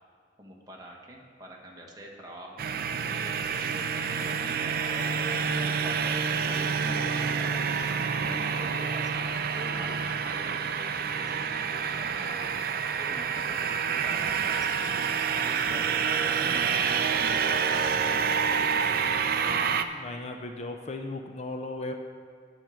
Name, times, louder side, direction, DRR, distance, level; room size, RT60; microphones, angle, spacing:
voice 1, 0.4-2.6 3.0-12.7 13.0-15.0 15.4-18.8, right 1 dB, 20° right, -1 dB, 1.2 m, -44 dB
sound 1, 2.6-19.8, right 6 dB, 55° right, 0.4 m, -28 dB
voice 2, 19.6-21.9, left 2 dB, 35° left, 5 dB, 0.5 m, -37 dB
8.9 x 5.0 x 7.5 m, 2.2 s
head